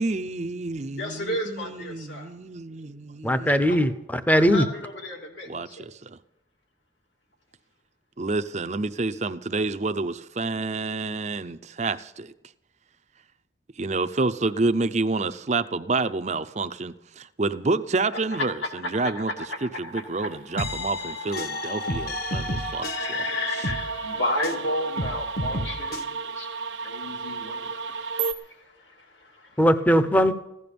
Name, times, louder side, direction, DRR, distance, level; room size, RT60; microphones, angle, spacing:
voice 1, 0.0-3.5 5.5-6.2 8.2-12.3 13.8-19.3 19.6-23.3 23.5-23.7, right 3 dB, 35° right, 0.6 m, -29 dB
voice 2, 0.9-2.3 3.6-3.8 4.3-5.9 19.0-19.5 19.8-20.6 21.0-22.2 22.9-26.5 26.8-28.5 29.0-29.5, left 1 dB, 75° left, 2.9 m, -33 dB
voice 3, 3.2-4.6 29.6-30.3, equal, 10° left, 0.7 m, -20 dB
sound 1, 20.2-28.3, right 4 dB, 80° right, 1.1 m, -34 dB
sound 2, 20.6-24.6 25.0-26.0, left 1 dB, 50° left, 1.5 m, -32 dB
15.5 x 11.0 x 6.9 m
head